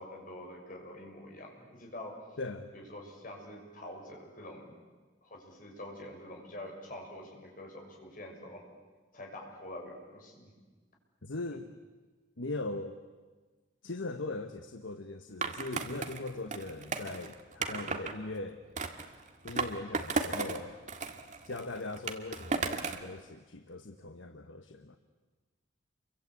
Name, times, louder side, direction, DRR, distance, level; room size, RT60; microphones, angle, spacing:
voice 1, 0.0-2.4 2.7-4.7 5.2-8.6 9.1-10.5, left 1 dB, 45° left, 1 dB, 6.6 m, -46 dB
voice 2, 2.4-2.7 11.2-11.7 12.4-13.0 13.8-18.6 19.4-20.8 21.4-25.0, left 2 dB, 85° left, 7 dB, 1.2 m, -40 dB
Skateboard, 15.4-18.1 18.8-20.6 20.9-23.1, right 4 dB, 40° right, 1.8 m, -35 dB
29.5 x 24.0 x 8.4 m, 1.3 s
head